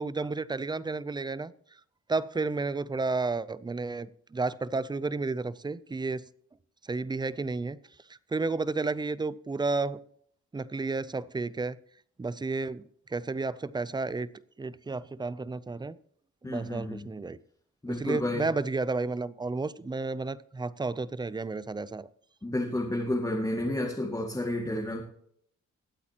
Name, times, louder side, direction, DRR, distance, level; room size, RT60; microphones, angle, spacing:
voice 1, 0.0-1.5 2.1-6.3 6.9-7.8 8.3-10.0 10.5-11.8 12.2-12.8 13.1-14.3 14.6-16.0 16.4-17.4 17.9-22.1, right 3 dB, 15° right, 0.5 m, -32 dB
voice 2, 16.4-17.0 17.8-18.5 22.4-25.0, left 1 dB, 10° left, 2.1 m, -31 dB
22.0 x 8.4 x 2.9 m
cardioid pair, 100°, 30 cm